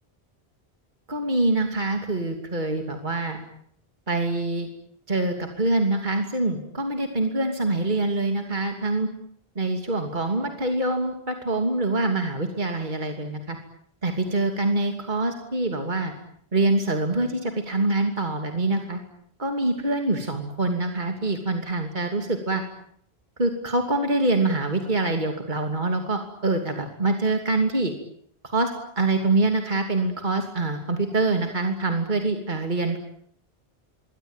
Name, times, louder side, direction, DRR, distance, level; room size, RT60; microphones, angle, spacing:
voice 1, 1.1-3.4 4.1-4.7 5.1-9.1 9.6-13.6 14.0-16.1 16.5-19.0 19.4-22.6 23.4-27.9 28.5-28.7 29.0-33.0, right 2 dB, 50° right, 4 dB, 3.1 m, -25 dB
26.5 x 23.0 x 9.1 m, 0.65 s
omnidirectional pair, 1.1 m